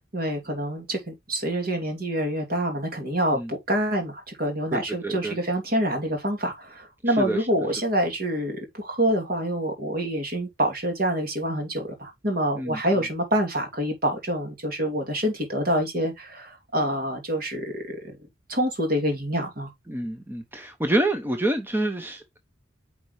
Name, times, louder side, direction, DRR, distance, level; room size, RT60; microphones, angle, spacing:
voice 1, 0.1-18.0 18.5-19.7, right 1 dB, 50° right, 2.9 m, -26 dB
voice 2, 4.7-5.4 7.1-7.5 12.6-12.8 19.9-22.4, right 1 dB, 10° right, 0.8 m, -27 dB
9.7 x 4.6 x 3.2 m
head